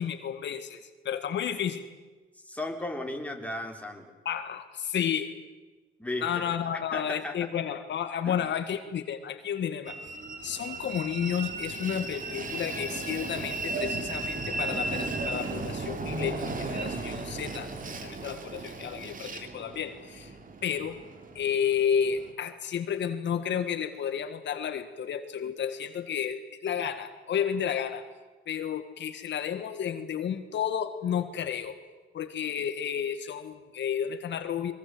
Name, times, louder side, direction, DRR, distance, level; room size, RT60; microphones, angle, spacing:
voice 1, 0.0-1.9 4.3-5.4 6.2-10.1 10.4-17.7 18.0-20.4 20.6-21.0 21.4-28.0 28.5-31.8 32.1-34.7, left 8 dB, 65° left, 8 dB, 1.8 m, -31 dB
voice 2, 2.3-4.1 6.0-6.5 6.9-7.5 8.3-8.4, left 1 dB, 5° left, 2 dB, 4.0 m, -35 dB
Train, 9.9-22.3, right 3 dB, 45° right, 3.2 m, -35 dB
24.0 x 22.5 x 7.8 m, 1.3 s
cardioid pair, 90°, 20 cm